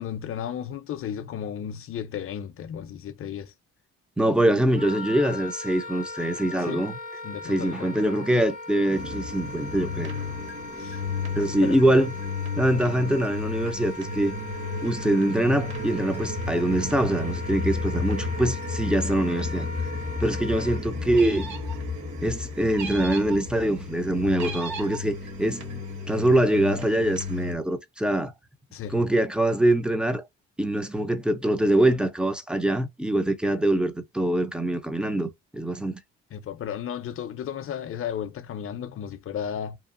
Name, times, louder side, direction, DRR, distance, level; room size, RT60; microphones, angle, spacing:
voice 1, 0.0-3.5 6.7-6.9 7.2-8.0 10.8-11.0 11.6-11.8 20.4-20.5 28.7-29.1 36.3-39.8, left 9 dB, 45° left, 0.5 m, -34 dB
voice 2, 4.2-6.9 7.5-10.1 11.4-12.1 12.6-14.3 14.8-19.7 20.2-21.6 22.2-25.6 26.1-28.3 28.9-30.2 30.6-36.0, right 1 dB, 5° right, 0.5 m, -24 dB
Wind instrument woodwind instrument, 4.7-20.8, left 2 dB, 25° right, 0.8 m, -39 dB
sound 1, 8.9-27.5, left 3 dB, 55° right, 1.5 m, -33 dB
sound 2, 21.1-21.8 22.7-23.4 24.3-25.0, right 5 dB, 70° right, 1.2 m, -37 dB
2.9 x 2.4 x 2.5 m
cardioid pair, 90°, 30 cm